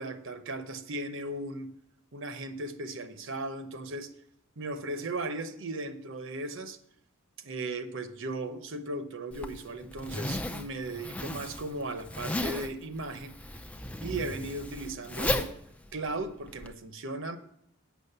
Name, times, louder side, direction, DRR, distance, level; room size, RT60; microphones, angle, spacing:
voice 1, 0.0-1.7 2.1-4.1 4.6-6.8 7.4-13.4 14.0-15.5 15.9-17.4, right 2 dB, 65° right, 0.8 m, -37 dB
Zipper (clothing), 9.3-16.7, left 1 dB, 5° left, 0.5 m, -35 dB
8.3 x 6.3 x 6.7 m
head